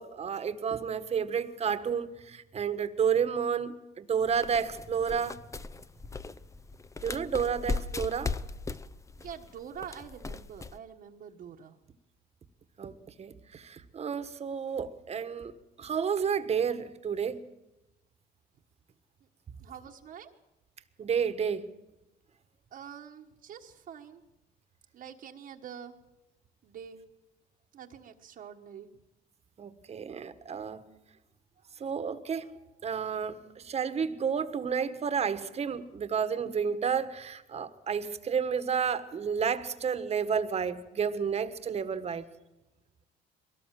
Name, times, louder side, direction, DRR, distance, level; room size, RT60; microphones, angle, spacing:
voice 1, 0.0-5.4 7.0-8.4 12.8-15.5 15.8-17.4 21.0-21.7 29.6-30.8 31.8-32.5 32.8-42.2, right 7 dB, 40° right, 1.4 m, -31 dB
sound 1, 4.2-10.8, left 3 dB, 20° left, 0.7 m, -38 dB
voice 2, 9.2-11.8 19.6-20.3 22.7-24.2 24.9-26.0 26.6-27.0 27.7-28.9, right 8 dB, 55° right, 1.4 m, -45 dB
22.0 x 18.0 x 7.6 m
cardioid pair, 110°, 17 cm